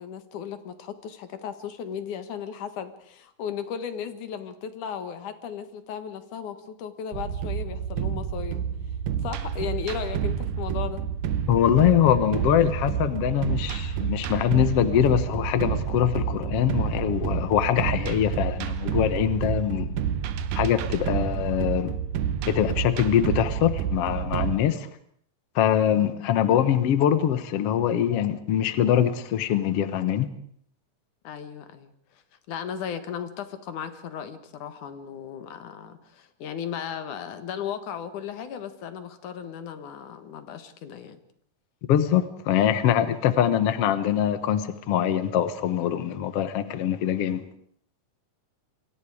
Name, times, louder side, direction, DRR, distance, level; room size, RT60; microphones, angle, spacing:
voice 1, 0.0-8.6 9.2-11.0 25.9-26.2 31.2-31.9 32.5-41.2, left 8 dB, 75° left, 3.0 m, -36 dB
sound 1, 7.1-24.6, right 8 dB, 85° right, 2.7 m, -29 dB
voice 2, 11.5-20.0 20.5-21.9 22.5-24.9 25.6-30.3 41.9-47.4, left 10 dB, 60° left, 1.9 m, -23 dB
28.0 x 24.0 x 5.0 m
omnidirectional pair, 3.6 m